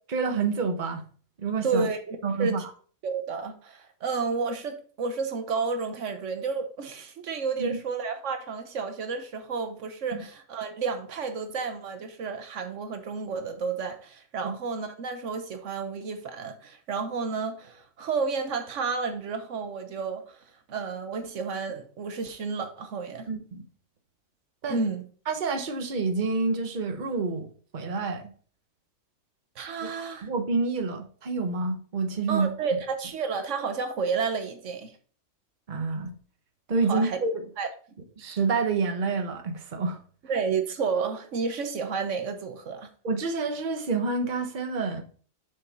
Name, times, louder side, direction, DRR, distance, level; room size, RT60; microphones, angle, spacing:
voice 1, 0.1-1.0 1.4-1.9 2.2-2.6 7.6-7.8 10.1-10.2 14.4-14.5 23.3-23.7 24.6-24.8 25.3-28.3 30.2-32.8 35.7-36.1 36.7-37.4 38.2-40.0 43.0-45.0, right 4 dB, 45° right, 5 dB, 1.1 m, -28 dB
voice 2, 1.6-2.6 3.0-20.4 20.7-23.3 24.7-25.0 29.6-30.3 32.3-34.9 36.9-37.2 37.6-37.7 40.3-42.9, right 5 dB, 80° right, 7 dB, 1.3 m, -31 dB
6.8 x 5.7 x 4.0 m, 0.42 s
omnidirectional pair, 1.3 m